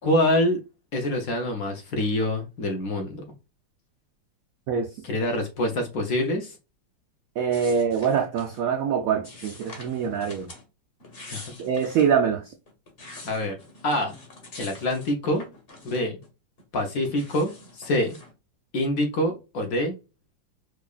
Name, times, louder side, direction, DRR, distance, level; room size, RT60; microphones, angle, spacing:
voice 1, 0.0-0.6 0.9-3.2 5.0-6.6 11.3-11.5 13.2-13.6 13.8-14.2 14.6-15.4 15.8-16.2 16.7-18.2 18.7-19.9, left 1 dB, 60° left, 1.0 m, -25 dB
voice 2, 7.4-10.5 11.6-12.4, right 7 dB, 85° right, 0.7 m, -24 dB
sound 1, 7.5-8.6 9.2-10.6 11.0-12.1 12.7-16.3 16.6-18.3, left 2 dB, 35° left, 1.1 m, -45 dB
4.8 x 2.4 x 2.3 m
omnidirectional pair, 2.1 m